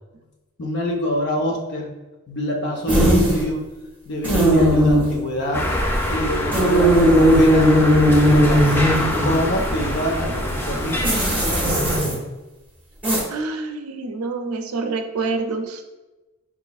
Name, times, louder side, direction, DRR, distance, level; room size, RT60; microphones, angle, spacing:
voice 1, 0.6-1.9 2.3-3.6 4.1-5.7 6.1-8.8 9.2-11.1, equal, 50° left, 1 dB, 0.7 m, -25 dB
sound 1, 2.9-3.5 4.2-5.2 6.5-9.5 11.0-12.1 13.0-13.2, equal, 10° right, 1.4 m, -17 dB
sound 2, 5.5-12.0, left 1 dB, 10° left, 0.4 m, -25 dB
voice 2, 13.3-15.8, right 3 dB, 85° right, 6 dB, 0.5 m, -27 dB
5.2 x 3.0 x 2.3 m, 1.1 s
head